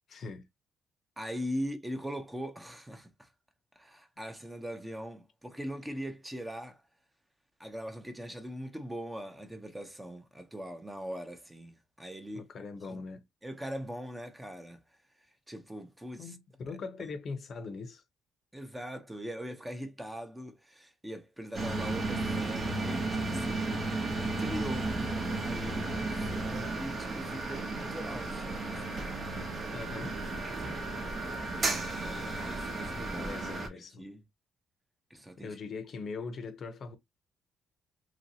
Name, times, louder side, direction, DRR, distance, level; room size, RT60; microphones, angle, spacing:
voice 1, 0.1-0.5 12.3-13.2 16.2-18.0 29.7-30.2 33.2-34.1 35.4-37.0, left 4 dB, 55° left, 0.6 m, -41 dB
voice 2, 1.2-3.3 3.8-6.8 7.6-12.5 12.8-13.0 13.4-14.8 15.5-16.4 18.5-23.9 24.4-25.0 25.4-28.8 31.6-33.3 33.7-34.2 35.1-35.6, equal, 10° right, 0.7 m, -41 dB
sound 1, 21.5-33.7, right 2 dB, 45° right, 0.9 m, -34 dB
3.0 x 2.6 x 2.8 m
cardioid pair, 90°, 0 cm